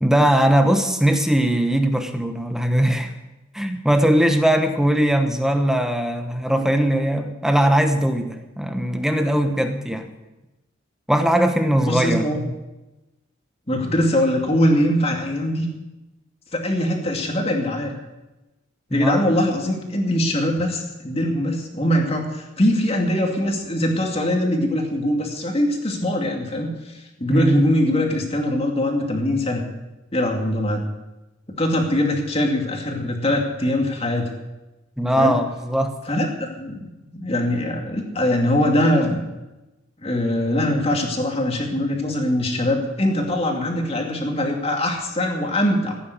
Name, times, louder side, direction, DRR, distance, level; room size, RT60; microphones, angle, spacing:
voice 1, 0.0-3.1 3.5-10.1 11.1-12.5 18.9-19.3 27.3-27.7 35.0-35.9, right 1 dB, ahead, 6 dB, 1.1 m, -20 dB
voice 2, 11.8-12.4 13.7-15.7 16.5-17.9 18.9-26.9 27.2-29.6 30.1-30.8 31.6-34.3 35.2-35.4 36.1-39.2 40.0-46.0, left 1 dB, 30° left, 2 dB, 2.5 m, -22 dB
15.5 x 9.5 x 8.3 m, 1.0 s
head